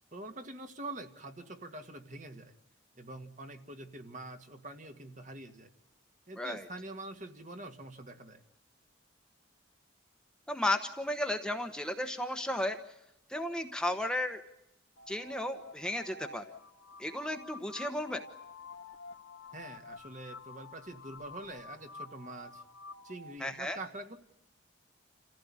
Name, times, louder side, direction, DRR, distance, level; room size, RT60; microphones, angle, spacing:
voice 1, 0.1-2.5 3.0-5.7 6.3-8.4 19.5-22.6 23.0-24.2, right 2 dB, 40° right, 7 dB, 1.8 m, -45 dB
voice 2, 10.5-12.8 13.3-14.4 15.1-16.4 17.0-18.2 23.4-23.8, left 1 dB, 5° left, 6 dB, 1.1 m, -34 dB
sound 1, 15.0-23.4, left 3 dB, 80° left, 2.4 m, -49 dB
28.5 x 15.5 x 9.8 m, 0.86 s
head